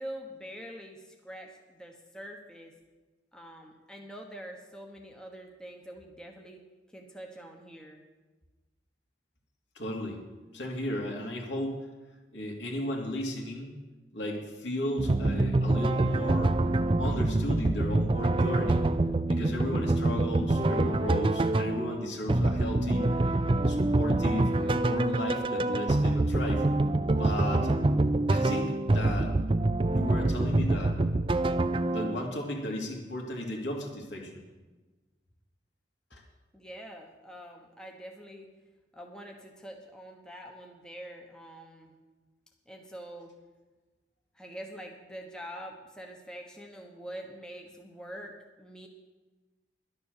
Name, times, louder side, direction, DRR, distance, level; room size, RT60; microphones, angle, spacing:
voice 1, 0.0-2.7 3.3-6.6 6.9-8.0 36.5-38.5 38.9-41.9 42.7-43.3 44.3-48.9, equal, 5° left, 1 dB, 1.1 m, -45 dB
voice 2, 9.7-10.2 10.5-11.8 12.3-13.8 14.1-16.5 17.0-18.8 19.3-23.1 23.7-26.6 27.2-27.7 28.3-29.3 29.9-31.0 31.9-34.4 36.1-36.2, left 1 dB, 85° left, 0 dB, 2.7 m, -35 dB
sound 1, 15.0-32.3, right 2 dB, 30° right, 0.4 m, -26 dB
11.5 x 10.0 x 6.7 m, 1.2 s
head